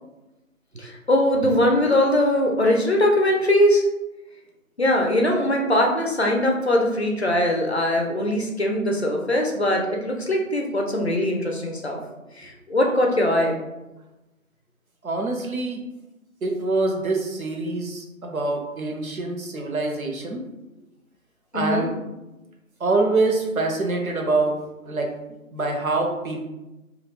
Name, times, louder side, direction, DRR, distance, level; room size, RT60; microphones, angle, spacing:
voice 1, 0.8-3.9 4.8-12.0 12.4-13.6 21.5-21.9, left 1 dB, 50° left, 1 dB, 0.5 m, -21 dB
voice 2, 15.0-15.8 16.4-20.4 21.5-21.9 22.8-24.6 24.8-25.1 25.5-26.5, right 3 dB, 80° right, 2 dB, 0.7 m, -25 dB
2.3 x 2.0 x 3.2 m, 1.0 s
figure-of-eight pair, 165°, 42 cm